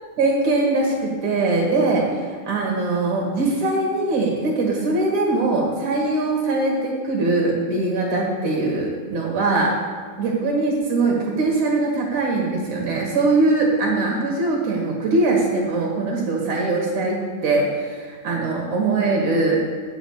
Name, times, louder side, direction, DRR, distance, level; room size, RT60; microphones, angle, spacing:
voice 1, 0.2-9.7 10.2-19.6, right 2 dB, 65° right, -2 dB, 2.9 m, -21 dB
7.7 x 7.1 x 8.0 m, 1.5 s
omnidirectional pair, 3.6 m